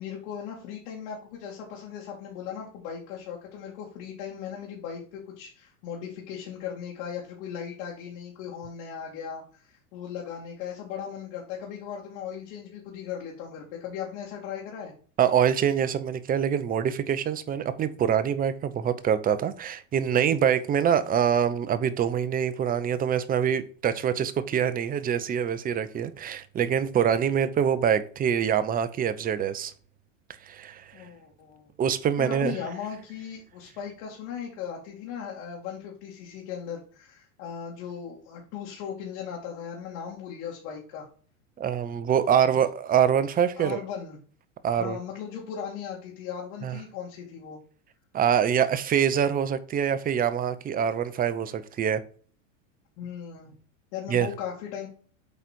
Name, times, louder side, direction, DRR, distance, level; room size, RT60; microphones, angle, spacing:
voice 1, 0.0-14.9 30.9-31.7 32.2-41.1 42.3-42.5 43.6-44.2 44.7-47.6 53.0-53.5 53.9-54.9, left 8 dB, 60° left, 2.6 m, -38 dB
voice 2, 15.2-29.7 30.4-30.9 31.8-32.6 41.6-43.8 44.6-45.0 46.6-46.8 48.1-52.0 54.1-54.3, right 8 dB, 20° right, 0.7 m, -25 dB
8.2 x 4.1 x 4.5 m
supercardioid pair, 120°, 39 cm